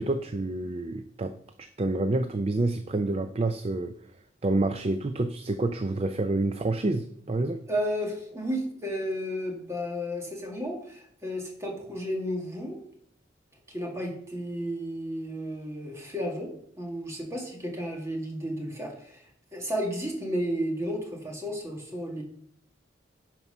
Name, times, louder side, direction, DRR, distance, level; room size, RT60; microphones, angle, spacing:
voice 1, 0.0-3.9 4.4-7.6, right 2 dB, 30° right, 9 dB, 0.4 m, -28 dB
voice 2, 7.7-12.8 13.7-22.2, equal, 15° right, 0 dB, 2.0 m, -33 dB
11.0 x 4.6 x 5.5 m, 0.68 s
head